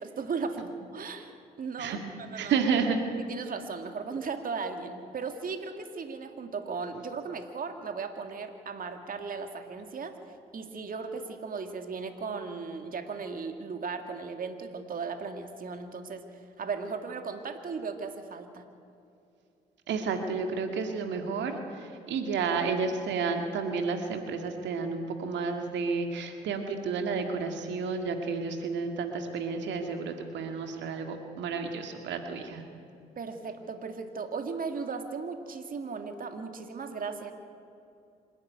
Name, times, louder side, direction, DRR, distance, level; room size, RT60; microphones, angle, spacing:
voice 1, 0.0-2.6 3.3-10.2 10.5-18.6 33.2-37.3, right 5 dB, 50° right, 6 dB, 2.1 m, -37 dB
voice 2, 2.3-3.0 19.9-32.6, right 5 dB, 75° right, 5 dB, 2.1 m, -31 dB
26.5 x 11.5 x 9.4 m, 2.6 s
supercardioid pair, 65°, 19 cm